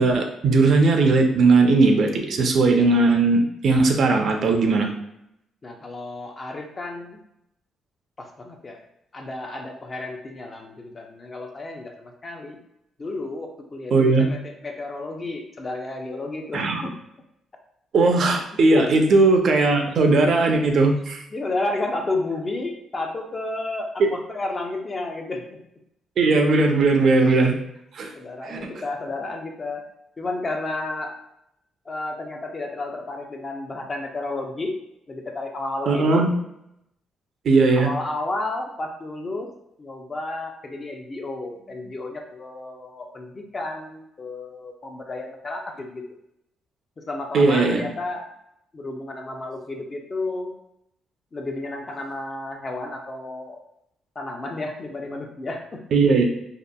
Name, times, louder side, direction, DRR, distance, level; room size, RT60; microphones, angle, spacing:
voice 1, 0.0-4.9 13.9-14.3 16.5-16.8 17.9-21.2 24.0-24.1 26.2-27.5 27.9-28.1 28.4-28.6 35.9-36.3 37.4-37.9 47.3-47.8 55.9-56.2, right 3 dB, 60° right, 4 dB, 0.4 m, -18 dB
voice 2, 5.6-7.2 8.2-8.8 9.1-12.6 13.0-16.9 18.7-19.0 21.3-25.6 28.1-29.8 30.2-31.2 31.9-34.8 35.1-36.2 37.7-39.5 39.8-46.2 47.0-48.2 48.7-50.5 51.3-53.6 54.2-55.8, left 2 dB, 35° left, 2 dB, 0.4 m, -32 dB
2.7 x 2.4 x 2.2 m, 0.79 s
cardioid pair, 90°, 0 cm